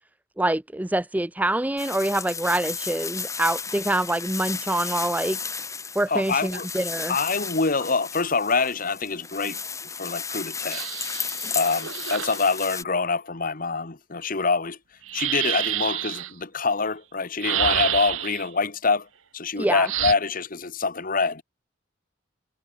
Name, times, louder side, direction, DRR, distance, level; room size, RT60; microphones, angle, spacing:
voice 1, 0.4-5.4 5.9-7.2 19.6-19.9, right 1 dB, 10° right, 0.5 m, -25 dB
sound 1, 1.8-12.8, left 5 dB, 15° left, 1.1 m, -34 dB
voice 2, 6.1-6.7 7.1-9.6 10.0-10.9 11.5-14.8 15.1-19.1 19.3-21.4, left 4 dB, 45° left, 1.4 m, -25 dB
sound 2, 10.7-12.4 15.0-16.3 17.4-18.5 19.9-20.1, right 12 dB, 80° right, 1.3 m, -28 dB
head